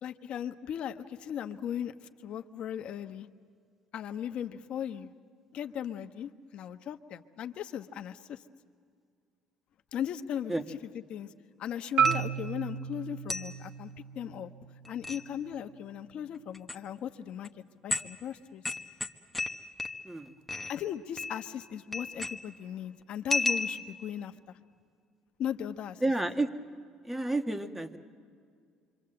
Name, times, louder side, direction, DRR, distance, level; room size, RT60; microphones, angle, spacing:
voice 1, 0.0-1.9 2.2-3.3 3.9-5.1 5.5-8.4 9.9-10.8 11.1-11.3 11.6-14.5 14.9-17.5 17.8-18.6 20.7-24.6 25.4-26.0, left 9 dB, 60° left, 8 dB, 1.1 m, -37 dB
Marimba xylophone, 12.0-16.1, right 8 dB, 55° right, 0.7 m, -33 dB
sound 1, 12.1-12.5 13.3-13.6 14.8-15.3 16.5-16.8 17.4-17.5 17.9-18.2 18.7-20.2 20.5-20.8 21.2-21.6 21.9-22.6 23.3-24.0, left 2 dB, 5° left, 1.3 m, -34 dB
voice 2, 26.0-26.5 27.0-28.0, right 2 dB, 10° right, 7 dB, 1.5 m, -30 dB
26.0 x 25.0 x 7.8 m, 2.2 s
cardioid pair, 95°, 2 cm